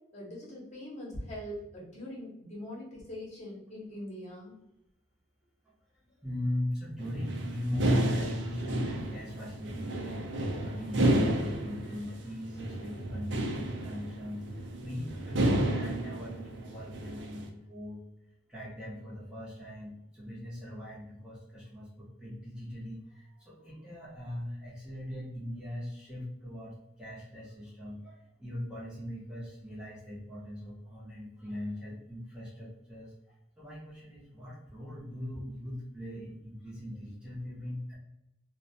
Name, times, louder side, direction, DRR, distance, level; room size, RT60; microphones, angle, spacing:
voice 1, 0.1-4.5, left 1 dB, 35° left, -5 dB, 0.8 m, -42 dB
voice 2, 5.9-14.4 14.8-18.0 18.5-33.1 33.6-38.0, left 1 dB, 5° right, -8 dB, 0.6 m, -39 dB
sound 1, 7.0-17.5, right 1 dB, 70° right, 0.4 m, -32 dB
2.4 x 2.1 x 2.6 m, 0.86 s
head